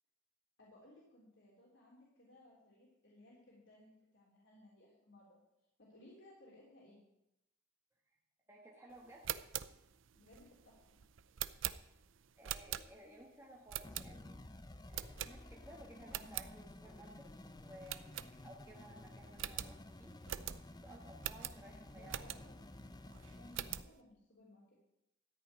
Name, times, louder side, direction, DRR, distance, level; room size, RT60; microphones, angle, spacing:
voice 1, 0.6-5.4 5.8-7.0 10.1-11.0 21.9-24.7, left 1 dB, 70° left, -5 dB, 3.3 m, -62 dB
voice 2, 8.5-9.3 12.4-14.4 14.8-20.2 20.8-22.3, right 1 dB, 15° right, -3 dB, 1.4 m, -57 dB
sound 1, 9.1-13.2 13.7-14.4 14.9-15.7 16.0-16.5 17.0-17.1 17.3-17.4 17.9-18.8 19.0-19.1 19.4-22.7 23.1-23.9, right 11 dB, 85° right, 0.6 m, -43 dB
sound 2, 13.8-23.8, left 1 dB, 20° left, 0.5 m, -53 dB
13.5 x 5.7 x 9.5 m, 0.87 s
head